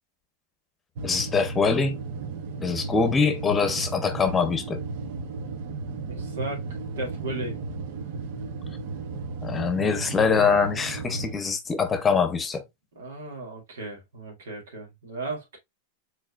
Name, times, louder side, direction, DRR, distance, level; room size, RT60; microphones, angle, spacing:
voice 1, 1.0-2.0 2.6-4.8 9.4-12.6, left 5 dB, 20° left, 0.8 m, -23 dB
sound 1, 1.0-11.3, right 4 dB, 65° right, 0.8 m, -35 dB
voice 2, 5.8-6.6 7.0-7.6 12.9-15.6, right 2 dB, 90° right, 2.2 m, -36 dB
4.8 x 3.9 x 2.4 m
hypercardioid pair, 125°, 0 cm